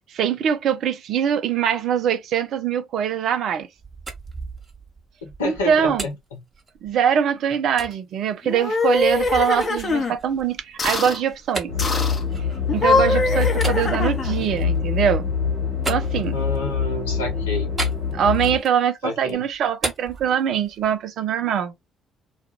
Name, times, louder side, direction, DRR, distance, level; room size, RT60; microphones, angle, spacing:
voice 1, 0.1-3.7 5.4-6.0 6.8-11.7 12.7-15.3 15.9-16.4 18.1-21.7, right 8 dB, 55° right, 0.5 m, -23 dB
sound 1, 3.6-7.1 7.8-8.0 8.5-12.9 13.5-16.8 17.8-18.9 19.2-21.0, right 3 dB, 25° right, 1.0 m, -36 dB
voice 2, 5.2-6.4 16.3-17.7 19.0-19.4, left 2 dB, 80° left, 0.8 m, -29 dB
sound 2, 8.4-10.1 10.8-11.2 11.8-12.2 12.7-14.4, left 3 dB, 35° left, 0.7 m, -22 dB
sound 3, 11.7-18.6, left 6 dB, 85° right, 1.0 m, -25 dB
2.5 x 2.3 x 2.9 m
figure-of-eight pair, 45°, 0 cm